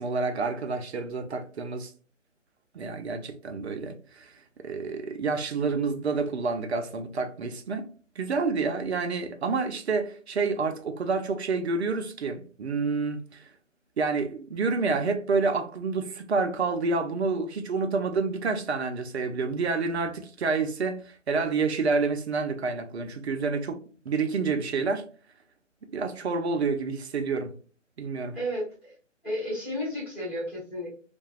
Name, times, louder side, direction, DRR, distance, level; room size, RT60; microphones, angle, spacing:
voice 1, 0.0-1.9 2.7-4.3 4.6-7.9 8.2-13.5 14.0-23.8 24.1-25.1 25.9-27.5 28.0-28.4, right 4 dB, 55° right, 0.5 m, -28 dB
voice 2, 28.3-28.9 29.2-30.9, equal, 5° left, 1.1 m, -32 dB
2.7 x 2.2 x 2.3 m
hypercardioid pair, 160°, 39 cm